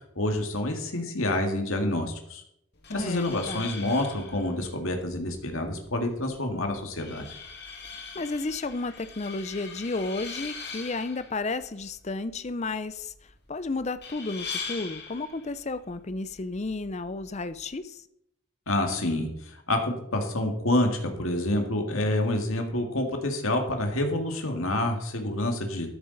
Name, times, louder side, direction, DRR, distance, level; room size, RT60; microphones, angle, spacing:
voice 1, 0.0-2.4 2.9-7.3 18.7-25.9, left 1 dB, 70° left, 4 dB, 1.9 m, -28 dB
sound 1, 2.7-17.7, left 5 dB, 50° left, 2.2 m, -42 dB
voice 2, 2.9-3.7 8.1-13.1 13.5-18.0, left 3 dB, 30° left, 13 dB, 0.5 m, -32 dB
13.0 x 10.5 x 4.0 m, 0.76 s
head